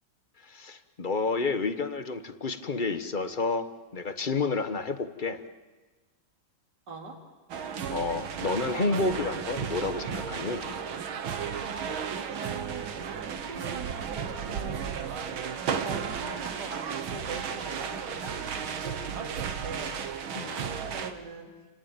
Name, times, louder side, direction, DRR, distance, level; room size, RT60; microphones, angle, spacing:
voice 1, 0.4-3.7 3.9-5.4 7.9-10.6 20.3-20.6, left 3 dB, 35° left, 10 dB, 0.9 m, -30 dB
voice 2, 6.9-7.2 11.8-14.9 15.7-21.5, right 3 dB, 55° right, 2 dB, 3.5 m, -42 dB
sound 1, 7.5-21.1, right 7 dB, 85° right, 2.2 m, -34 dB
29.0 x 18.5 x 8.9 m, 1.3 s
omnidirectional pair, 2.2 m